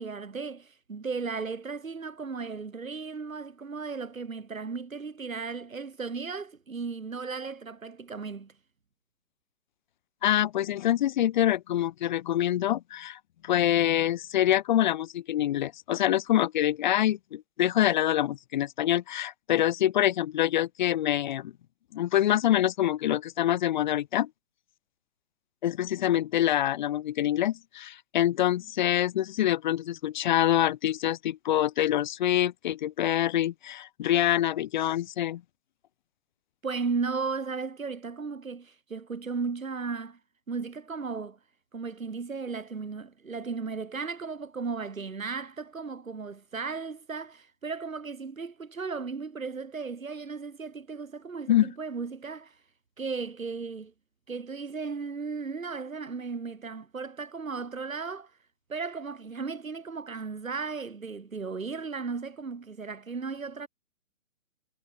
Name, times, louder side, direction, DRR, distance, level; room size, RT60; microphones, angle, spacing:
voice 1, 0.0-8.5 36.6-40.2 40.5-41.4 41.7-52.5 53.0-53.9 54.3-58.3 58.7-63.7, right 4 dB, 80° right, 3.0 m, -35 dB
voice 2, 10.2-21.5 21.9-24.3 25.6-35.4 51.5-51.7, left 12 dB, 35° left, 1.1 m, -25 dB
figure-of-eight pair, 135°, 40 cm